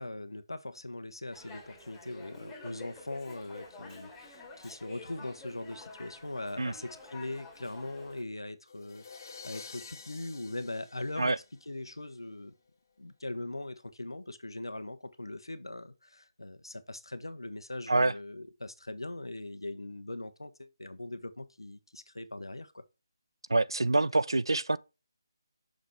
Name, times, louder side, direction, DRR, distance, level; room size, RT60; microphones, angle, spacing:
voice 1, 0.0-12.5 13.0-22.8, left 2 dB, 85° left, 1.0 m, -41 dB
Dog, 1.3-8.2, left 3 dB, 10° left, 2.0 m, -49 dB
sound 1, 8.7-11.9, left 5 dB, 45° left, 1.6 m, -49 dB
voice 2, 23.5-24.8, right 2 dB, 80° right, 0.4 m, -26 dB
6.4 x 5.9 x 3.1 m
figure-of-eight pair, 150°, 2 cm